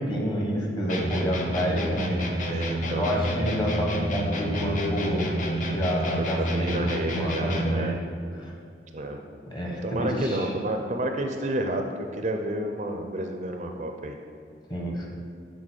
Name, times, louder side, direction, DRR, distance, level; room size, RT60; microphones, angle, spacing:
voice 1, 0.0-2.5 2.9-5.3 5.6-6.7 7.1-8.0 8.4-8.5 9.5-10.5 14.7-15.1, equal, 25° left, -2 dB, 1.1 m, -28 dB
sound 1, 0.9-7.9, right 1 dB, 40° left, 0.7 m, -29 dB
voice 2, 2.4-3.1 6.2-8.0 8.9-9.2 9.8-11.8 12.1-14.1, right 1 dB, 40° right, 4 dB, 0.4 m, -30 dB
7.4 x 3.8 x 6.3 m, 2.3 s
head